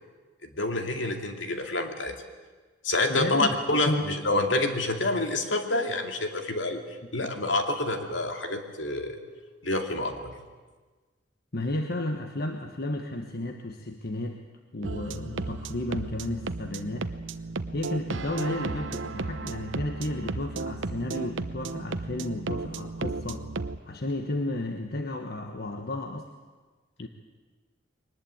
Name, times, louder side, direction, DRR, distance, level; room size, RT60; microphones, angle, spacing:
voice 1, 0.5-2.1 2.8-6.8 7.1-9.2 9.6-10.3, left 2 dB, 70° left, 5 dB, 2.5 m, -27 dB
voice 2, 3.1-4.0 11.5-14.4 14.7-17.1 17.7-23.5 23.8-26.3 27.0-27.1, left 1 dB, 55° left, 5 dB, 1.3 m, -32 dB
sound 1, 14.8-23.8, right 3 dB, 85° right, 0.9 m, -34 dB
22.5 x 19.5 x 8.8 m, 1.3 s
head